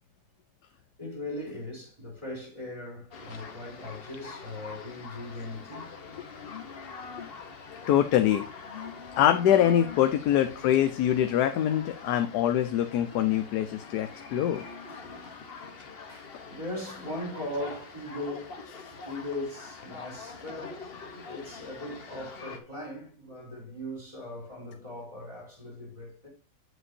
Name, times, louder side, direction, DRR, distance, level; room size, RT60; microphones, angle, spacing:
voice 1, 1.0-6.0 8.8-9.2 14.6-15.4 16.1-18.6 19.0-20.8 21.3-26.3, left 1 dB, 20° right, 4.3 m, -39 dB
sound 1, 3.1-22.6, left 4 dB, 40° left, 1.0 m, -44 dB
voice 2, 7.9-8.4 9.2-14.6, left 11 dB, 75° left, 1.2 m, -24 dB
7.8 x 7.8 x 2.6 m
omnidirectional pair, 1.8 m